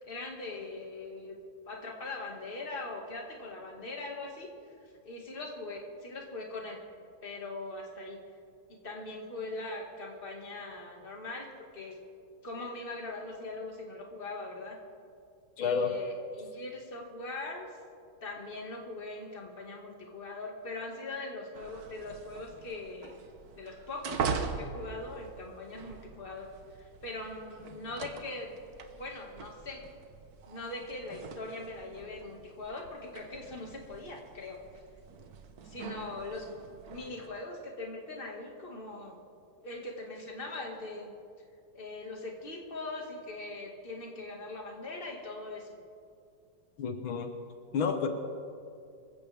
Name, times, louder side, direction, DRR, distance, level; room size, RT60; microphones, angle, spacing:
voice 1, 0.0-1.3 1.7-4.5 5.0-6.8 7.2-8.2 8.8-11.5 11.7-12.0 12.4-14.8 15.6-17.7 18.2-23.1 23.6-26.5 26.8-28.5 29.0-29.8 30.5-34.6 35.6-36.5 36.9-39.2 39.6-41.1 41.7-45.7, left 2 dB, 25° left, 0 dB, 2.1 m, -41 dB
voice 2, 15.6-15.9 46.8-47.3 47.7-48.1, left 6 dB, 80° left, 6 dB, 1.8 m, -29 dB
sound 1, 21.5-37.3, right 5 dB, 55° right, 1.3 m, -42 dB
26.0 x 15.5 x 3.5 m, 2.4 s
omnidirectional pair, 2.2 m